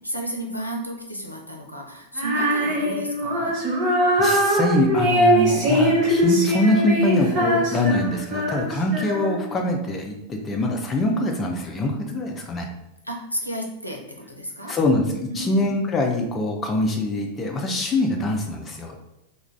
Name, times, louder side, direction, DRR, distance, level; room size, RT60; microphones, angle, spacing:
voice 1, 0.0-3.6 13.0-14.7 15.3-15.7, right 1 dB, 90° left, 0 dB, 0.5 m, -32 dB
Female singing, 2.2-9.5, equal, 35° right, 0.8 m, -21 dB
voice 2, 4.0-12.7 14.7-19.0, left 1 dB, 20° left, 1 dB, 0.4 m, -24 dB
2.4 x 2.2 x 3.1 m, 0.83 s
figure-of-eight pair, 90°, 0 cm